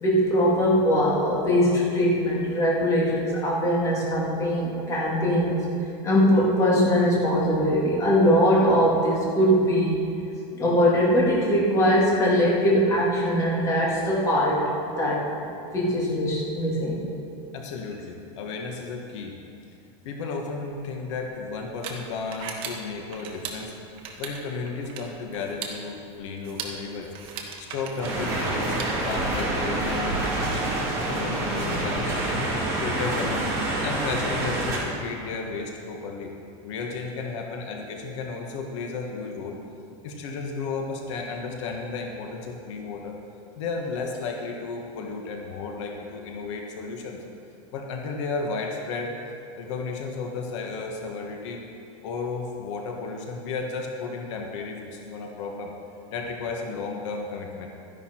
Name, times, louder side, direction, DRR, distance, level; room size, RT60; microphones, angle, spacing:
voice 1, 0.0-5.6 6.0-9.9 10.5-14.7 15.0-15.2 15.7-17.0, equal, 20° left, -5 dB, 2.2 m, -21 dB
voice 2, 17.5-19.4 20.0-23.7 24.2-27.1 27.6-28.8 29.0-30.2 31.1-32.4 32.8-33.5 33.8-36.3 36.6-39.6 40.0-43.2 43.5-47.2 47.7-49.2 49.6-51.6 52.0-55.7 56.1-57.7, left 4 dB, 75° left, 1 dB, 1.4 m, -33 dB
sound 1, 20.7-29.4, right 5 dB, 35° right, 1.2 m, -40 dB
sound 2, 28.0-34.8, right 2 dB, 20° right, 2.6 m, -27 dB
12.5 x 10.5 x 4.4 m, 2.6 s
supercardioid pair, 170°, 15 cm